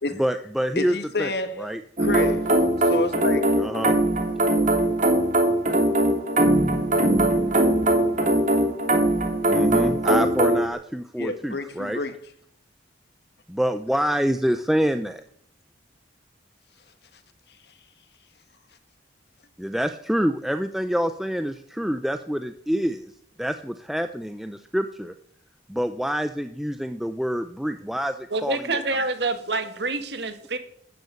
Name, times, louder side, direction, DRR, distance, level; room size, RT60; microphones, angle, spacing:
voice 1, 0.1-1.3 1.6-1.8 3.6-4.0 9.5-12.0 13.5-15.2 19.6-23.1 23.4-25.1 25.7-28.8, equal, ahead, 0.6 m, -26 dB
voice 2, 0.7-1.7 2.0-3.6 11.2-12.1, left 3 dB, 60° left, 1.7 m, -29 dB
sound 1, 2.0-10.7, right 1 dB, 40° right, 2.9 m, -21 dB
voice 3, 28.3-30.6, right 3 dB, 65° right, 2.1 m, -27 dB
13.5 x 10.5 x 8.6 m
head